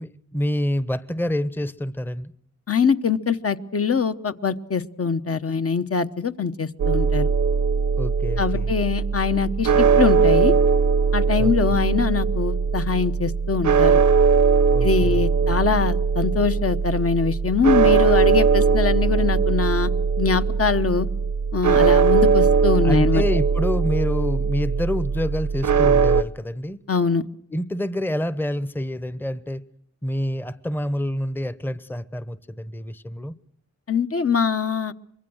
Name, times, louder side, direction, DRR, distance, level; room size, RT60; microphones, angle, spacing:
voice 1, 0.0-2.3 8.0-8.7 11.4-11.5 14.7-15.2 22.8-26.8 27.5-29.6 30.0-33.3, left 1 dB, 5° left, 0.8 m, -27 dB
voice 2, 2.7-7.3 8.4-10.5 11.1-14.0 14.8-19.9 20.2-21.1 21.5-23.2 26.9-27.2 33.9-34.9, left 5 dB, 50° left, 1.0 m, -23 dB
sound 1, 6.8-26.2, right 5 dB, 75° right, 0.8 m, -20 dB
25.0 x 22.5 x 6.3 m
wide cardioid pair, 70°, 30 cm